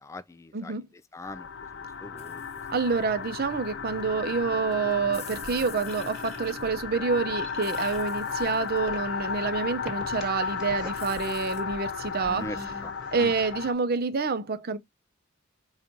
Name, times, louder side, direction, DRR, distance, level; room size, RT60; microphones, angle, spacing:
voice 1, 0.0-0.8 1.1-1.5 1.7-3.0 12.3-12.9 13.2-13.3, left 1 dB, 15° left, 0.3 m, -42 dB
sound 1, 1.2-13.7, left 6 dB, 55° left, 0.6 m, -34 dB
sound 2, 2.2-12.9, left 3 dB, 30° left, 1.1 m, -50 dB
voice 2, 2.7-12.5 13.1-14.8, right 4 dB, 50° right, 0.6 m, -28 dB
sound 3, 5.9-13.5, equal, ahead, 1.5 m, -47 dB
5.2 x 2.4 x 2.8 m
head